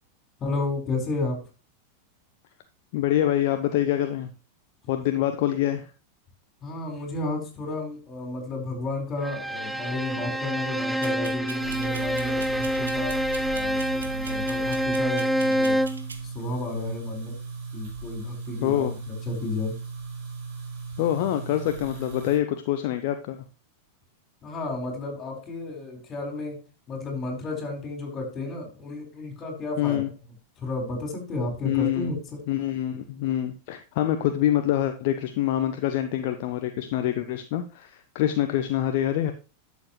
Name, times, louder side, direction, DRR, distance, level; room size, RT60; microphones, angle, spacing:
voice 1, 0.4-1.4 6.6-13.1 13.5-15.8 16.2-17.3 17.7-18.9 19.3-19.7 24.4-26.6 26.9-30.0 30.6-32.4, left 2 dB, 25° left, 2 dB, 4.5 m, -32 dB
voice 2, 2.9-4.3 4.9-5.9 18.6-18.9 21.0-23.4 29.8-30.1 31.6-32.1 32.5-39.3, left 12 dB, 50° left, 8 dB, 0.7 m, -25 dB
Bowed string instrument, 9.2-16.1, equal, ahead, 0.6 m, -27 dB
sound 1, 11.0-16.3, right 4 dB, 75° right, 1.3 m, -43 dB
sound 2, 11.6-22.4, right 4 dB, 50° right, 4.7 m, -37 dB
11.5 x 7.2 x 3.1 m, 0.33 s
figure-of-eight pair, 90°, 0 cm